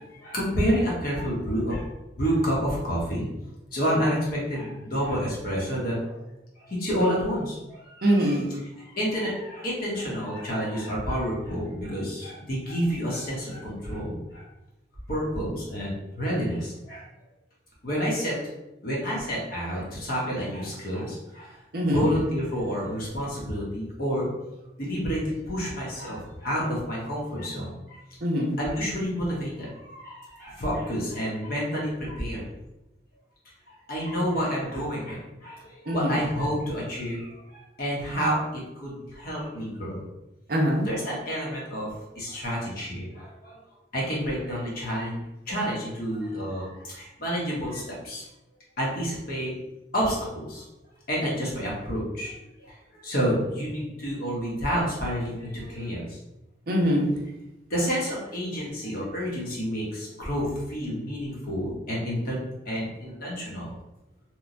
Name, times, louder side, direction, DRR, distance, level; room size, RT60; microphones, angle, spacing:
voice 1, 0.0-1.9 2.2-3.3 3.7-6.3 6.7-14.4 15.1-17.1 17.8-18.4 18.8-21.5 21.9-24.3 24.8-28.0 28.6-32.5 33.9-40.0 40.8-43.6 43.9-45.2 45.5-48.2 48.8-49.5 49.9-50.6 51.1-52.3 52.7-52.8 53.0-56.2 57.7-62.4 62.7-63.8, equal, 50° left, -4 dB, 0.9 m, -29 dB
voice 2, 8.0-8.5 21.7-22.1 28.2-28.5 35.9-36.1 40.5-40.9 56.7-57.1, equal, 50° right, -1 dB, 0.5 m, -23 dB
2.9 x 2.1 x 2.5 m, 0.96 s
head